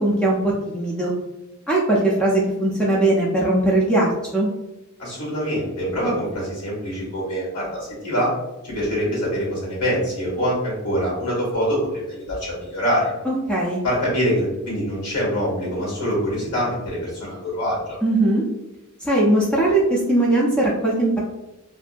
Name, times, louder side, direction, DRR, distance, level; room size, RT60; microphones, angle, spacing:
voice 1, 0.0-1.1 1.7-4.5 13.3-13.8 18.0-18.4 19.0-21.2, right 1 dB, 5° left, -5 dB, 0.3 m, -20 dB
voice 2, 5.0-8.3 8.6-13.1 13.8-18.0, equal, 85° left, -4 dB, 1.3 m, -24 dB
2.6 x 2.2 x 2.4 m, 0.97 s
head